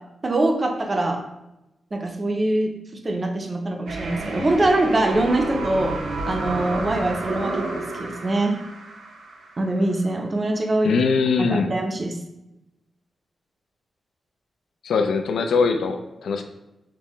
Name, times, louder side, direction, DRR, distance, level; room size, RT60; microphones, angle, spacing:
voice 1, 0.2-1.2 1.9-2.7 3.0-5.9 6.2-8.6 9.6-10.9 11.4-12.2, right 2 dB, 25° right, 3 dB, 0.5 m, -23 dB
sound 1, 3.9-9.8, right 2 dB, 70° right, 0.5 m, -30 dB
voice 2, 10.8-11.7 14.8-16.4, left 4 dB, 85° left, 6 dB, 0.4 m, -21 dB
5.4 x 2.1 x 3.0 m, 0.93 s
wide cardioid pair, 155°, 0 cm